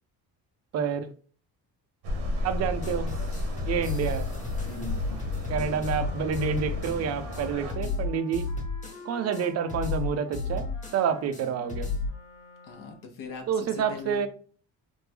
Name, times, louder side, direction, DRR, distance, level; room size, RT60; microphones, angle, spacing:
voice 1, 0.7-1.1 2.4-3.1 3.7-4.3 5.5-8.5 9.0-11.9 13.5-14.3, right 7 dB, 40° right, 10 dB, 0.4 m, -28 dB
sound 1, 2.0-7.7, left 1 dB, 85° right, 1.1 m, -34 dB
sound 2, 2.8-7.0 7.3-7.4 7.7-9.0 9.3-9.4 9.7-11.0 11.3-11.4 11.7-12.1, left 3 dB, 20° left, 1.0 m, -32 dB
voice 2, 4.7-5.2 5.5-5.8 12.6-14.2, left 4 dB, 55° left, 4 dB, 0.7 m, -40 dB
Wind instrument woodwind instrument, 5.8-13.2, left 3 dB, 85° left, 1.0 m, -49 dB
3.3 x 2.0 x 3.3 m, 0.42 s
cardioid pair, 110°, 40 cm